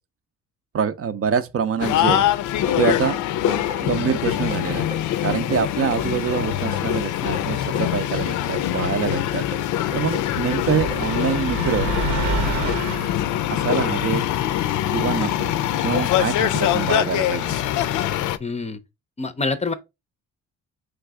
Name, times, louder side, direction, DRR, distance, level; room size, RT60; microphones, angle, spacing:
voice 1, 0.7-2.2 2.8-3.2 3.5-4.9 5.2-11.9 13.5-14.2 14.9-15.5 15.8-17.6, right 7 dB, 50° right, 0.6 m, -25 dB
sound 1, 1.8-18.4, left 12 dB, 75° left, 0.5 m, -23 dB
sound 2, 2.7-12.4, right 2 dB, 20° right, 0.8 m, -37 dB
sound 3, 10.2-13.1, right 2 dB, 75° right, 1.0 m, -27 dB
voice 2, 18.4-18.8 19.2-19.7, left 3 dB, 20° left, 0.5 m, -26 dB
3.9 x 3.4 x 3.4 m
cardioid pair, 90°, 30 cm